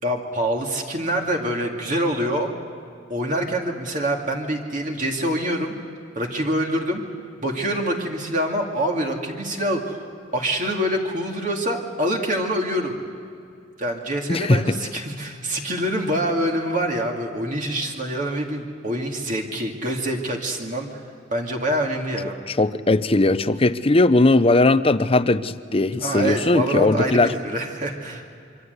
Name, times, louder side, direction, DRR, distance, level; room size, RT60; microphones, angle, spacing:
voice 1, 0.0-2.5 3.1-5.7 6.2-7.0 7.4-10.0 10.3-13.0 13.8-20.9 21.3-22.4 26.0-28.2, right 1 dB, 45° right, 1 dB, 2.4 m, -25 dB
voice 2, 14.3-14.8 22.5-27.3, left 2 dB, 30° left, 13 dB, 0.7 m, -19 dB
26.5 x 24.0 x 8.1 m, 2.5 s
head